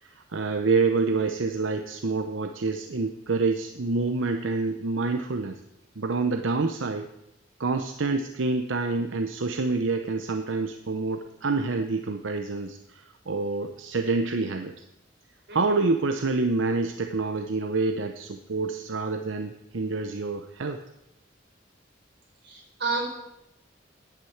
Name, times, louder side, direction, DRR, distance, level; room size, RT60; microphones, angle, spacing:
voice 1, 0.0-5.6 6.0-7.1 7.6-14.7 15.5-20.8, right 3 dB, 85° right, 6 dB, 0.8 m, -27 dB
voice 2, 15.5-15.8 22.4-23.1, right 4 dB, 60° right, 0 dB, 4.3 m, -31 dB
10.5 x 8.7 x 7.9 m, 0.86 s
head